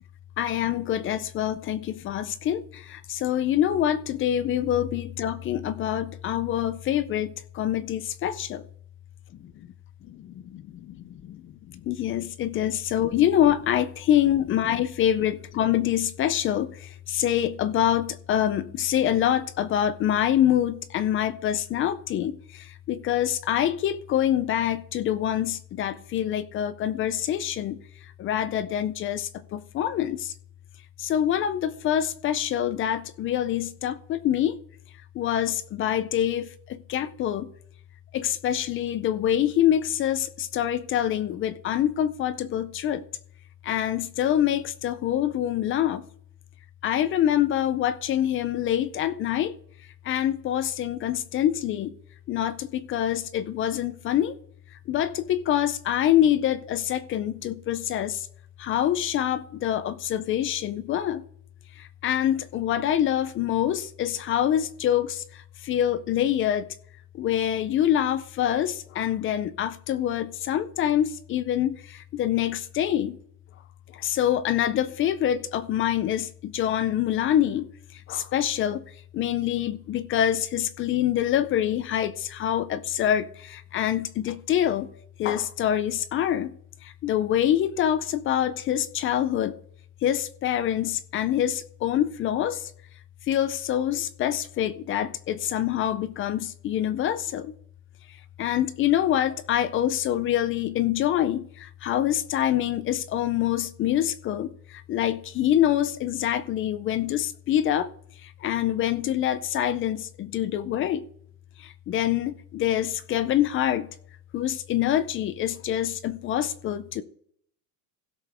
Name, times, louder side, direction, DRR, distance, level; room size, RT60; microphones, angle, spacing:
voice 1, 0.4-8.6 9.4-9.7 11.4-11.5 11.8-30.3 31.0-34.6 35.1-37.5 38.1-43.0 43.6-46.0 46.8-49.5 50.0-51.9 52.3-54.4 54.9-58.3 58.6-61.2 61.8-66.7 67.1-73.2 73.9-78.8 79.1-84.9 85.2-86.5 86.8-89.6 90.0-92.7 93.3-97.5 98.4-107.9 108.2-111.0 111.6-113.9 114.3-117.0, left 11 dB, 30° left, 0.4 m, -25 dB
16.5 x 6.9 x 3.4 m
cardioid pair, 155°, 46 cm